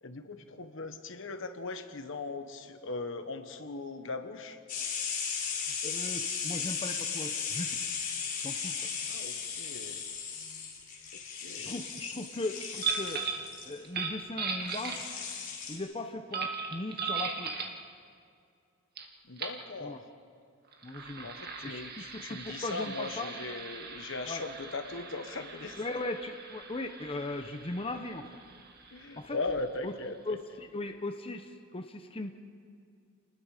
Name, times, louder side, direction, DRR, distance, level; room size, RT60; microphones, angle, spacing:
voice 1, 0.0-4.6 9.1-10.0 11.3-11.7 19.2-20.0 21.2-25.8 28.9-30.4, left 3 dB, 65° left, 8 dB, 1.4 m, -39 dB
sound 1, 4.7-13.8 14.7-15.8, left 6 dB, 40° left, 4.7 m, -36 dB
voice 2, 5.5-7.8 8.4-8.9 11.5-13.3 13.6-15.0 15.7-17.5 19.8-20.0 20.8-21.3 21.6-23.3 24.3-24.4 25.7-28.3 29.2-29.4 29.8-29.9 30.3-32.3, left 2 dB, 25° left, 5 dB, 0.9 m, -38 dB
sound 2, 12.8-13.5 13.8-15.4 16.3-17.8 19.0-19.1 19.4-19.6 20.7-30.0, right 5 dB, 50° right, 1.9 m, -39 dB
30.0 x 20.0 x 5.1 m, 2.4 s
head